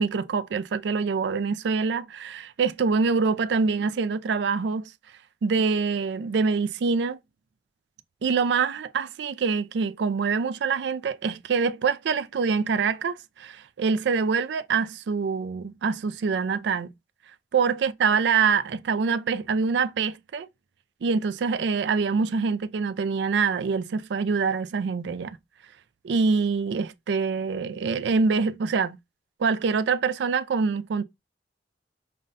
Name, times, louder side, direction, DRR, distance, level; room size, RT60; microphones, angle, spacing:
voice 1, 0.0-4.9 5.4-7.2 8.2-16.9 17.5-20.5 21.0-25.4 26.0-29.0 29.4-31.0, right 5 dB, 70° right, 0.3 m, -25 dB
5.3 x 2.2 x 2.5 m
head